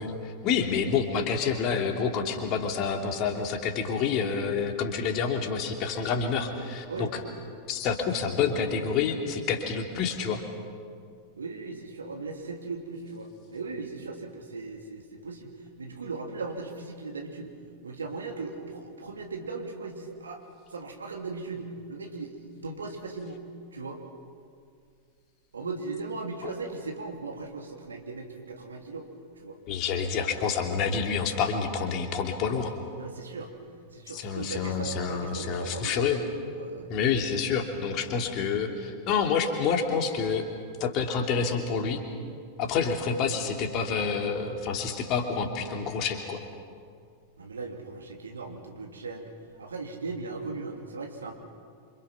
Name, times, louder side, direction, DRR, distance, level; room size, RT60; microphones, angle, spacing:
voice 1, 0.0-7.1 7.7-10.4 29.7-32.7 34.1-36.2 36.9-40.5 40.8-42.0 42.6-46.4, left 6 dB, 40° left, 4 dB, 2.9 m, -28 dB
voice 2, 11.4-17.5 17.8-20.4 20.7-23.4 23.7-24.0 25.5-29.1 29.4-29.6 29.8-30.1 33.0-33.5 33.9-36.0 36.5-36.9 47.4-49.3 49.6-51.3, right 3 dB, 70° right, 2 dB, 3.0 m, -38 dB
27.5 x 26.0 x 5.8 m, 2.2 s
figure-of-eight pair, 90°, 0 cm